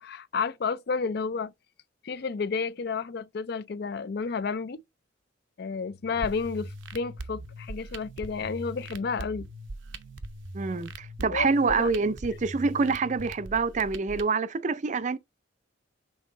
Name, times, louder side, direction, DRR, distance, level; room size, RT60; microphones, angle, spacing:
voice 1, 0.0-1.5 2.0-4.8 5.6-9.5 11.3-11.9, left 5 dB, 55° left, 0.4 m, -31 dB
sound 1, 6.2-14.2, right 1 dB, 85° right, 0.8 m, -41 dB
voice 2, 10.5-15.2, right 4 dB, 40° right, 0.4 m, -26 dB
6.3 x 4.0 x 3.8 m
head